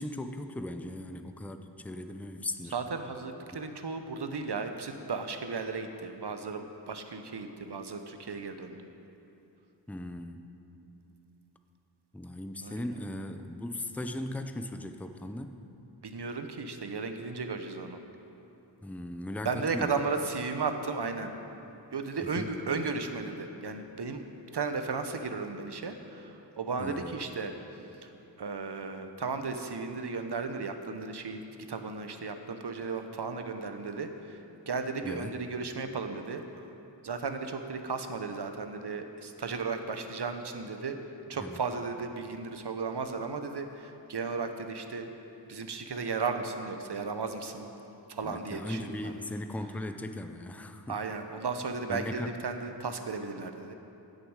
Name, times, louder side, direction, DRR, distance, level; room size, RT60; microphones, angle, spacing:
voice 1, 0.0-2.7 9.9-10.5 12.1-15.6 18.8-20.0 22.2-22.5 26.8-27.2 35.0-35.4 41.3-41.6 48.2-51.0 51.9-52.4, left 1 dB, 5° left, 7 dB, 0.5 m, -38 dB
voice 2, 2.7-8.9 12.6-12.8 16.0-18.0 19.4-21.4 21.9-24.2 24.5-27.5 28.0-28.1 28.4-31.4 31.7-34.4 34.7-36.4 37.0-41.0 41.3-45.1 45.5-47.7 48.1-49.1 50.9-53.7, right 4 dB, 65° right, 7 dB, 0.8 m, -35 dB
15.5 x 6.6 x 4.8 m, 2.9 s
wide cardioid pair, 50°, 44 cm